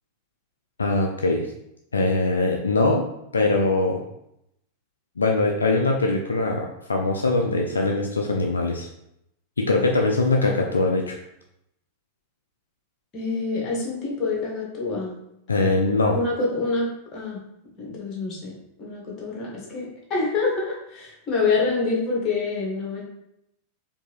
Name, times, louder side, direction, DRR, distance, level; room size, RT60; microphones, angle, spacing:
voice 1, 0.8-1.5 1.9-3.0 3.3-4.0 5.2-8.9 9.6-11.2 15.5-16.2, left 2 dB, 75° left, 1 dB, 0.4 m, -22 dB
voice 2, 13.1-15.1 16.1-17.4 17.8-18.5 18.8-23.0, left 3 dB, 30° left, -2 dB, 1.3 m, -26 dB
4.4 x 2.7 x 3.1 m, 0.81 s
figure-of-eight pair, 90°, 0 cm